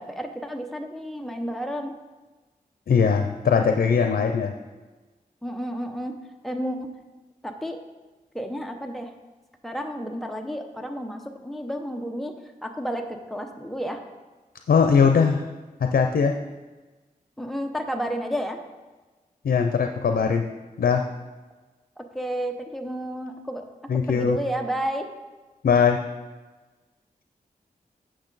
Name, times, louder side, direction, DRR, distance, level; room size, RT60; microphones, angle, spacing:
voice 1, 0.0-1.9 5.4-6.1 6.4-6.9 7.4-7.8 8.3-9.1 9.6-12.3 12.6-13.0 13.3-14.0 17.4-18.6 22.1-23.6 24.1-25.1, equal, ahead, 4 dB, 0.8 m, -31 dB
voice 2, 2.9-4.5 14.7-15.5 15.8-16.3 19.4-20.4 20.8-21.0 23.9-24.4 25.6-26.0, left 6 dB, 90° left, 5 dB, 0.5 m, -20 dB
8.6 x 6.3 x 4.0 m, 1.2 s
wide cardioid pair, 75°, 15 cm